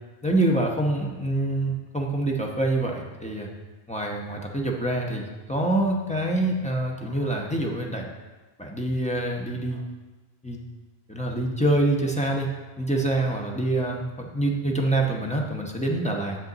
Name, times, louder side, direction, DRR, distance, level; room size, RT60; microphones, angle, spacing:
voice 1, 0.2-3.5 3.9-8.1 8.6-9.8 10.4-10.6 11.1-12.5 12.8-16.4, right 1 dB, 5° left, -1 dB, 0.8 m, -26 dB
8.3 x 6.3 x 4.0 m, 1.2 s
omnidirectional pair, 1.1 m